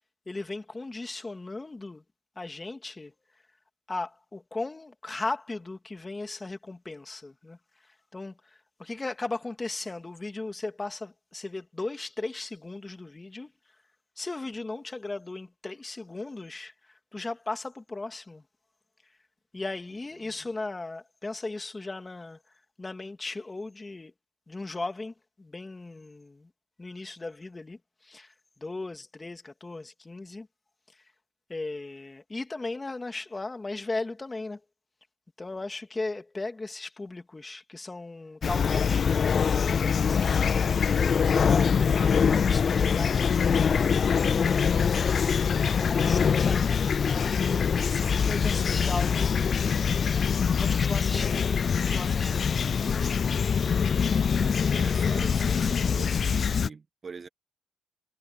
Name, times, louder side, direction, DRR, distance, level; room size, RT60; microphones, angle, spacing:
voice 1, 0.3-2.0 2.4-3.1 3.9-13.5 14.2-18.4 19.5-22.4 22.8-24.1 24.5-26.5 26.8-30.5 30.9-31.0 31.5-34.6 35.4-40.4 41.1-46.7 47.6-49.3 50.0-53.4 55.5-55.8, left 2 dB, 20° left, 2.7 m, -37 dB
Fowl / Chirp tweet, 38.4-56.7, left 6 dB, 45° left, 0.3 m, -24 dB
sound 1, 47.1-52.1, left 12 dB, 80° left, 6.6 m, -49 dB
voice 2, 48.0-48.4 54.4-57.3, right 5 dB, 40° right, 1.7 m, -43 dB
cardioid pair, 90°, 0 cm